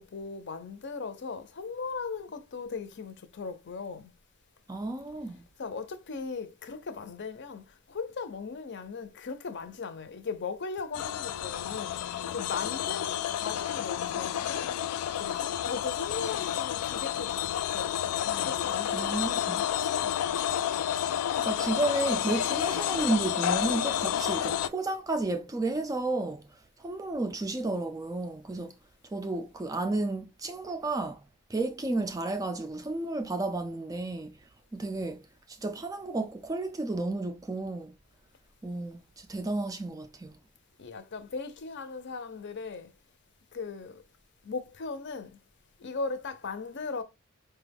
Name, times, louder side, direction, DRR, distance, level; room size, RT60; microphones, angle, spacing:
voice 1, 0.0-4.1 5.6-12.0 12.3-14.7 15.2-20.5 40.8-42.9 43.5-44.0 44.4-45.4 45.8-47.0, left 4 dB, 55° left, 0.6 m, -38 dB
voice 2, 4.7-5.4 18.9-19.6 21.4-26.5 26.8-28.7 29.1-31.2 31.5-34.4 34.7-35.2 35.6-37.9 38.6-40.3, right 2 dB, 15° right, 0.3 m, -32 dB
sound 1, 10.9-24.7, left 10 dB, 85° left, 0.3 m, -30 dB
4.7 x 2.2 x 3.4 m
head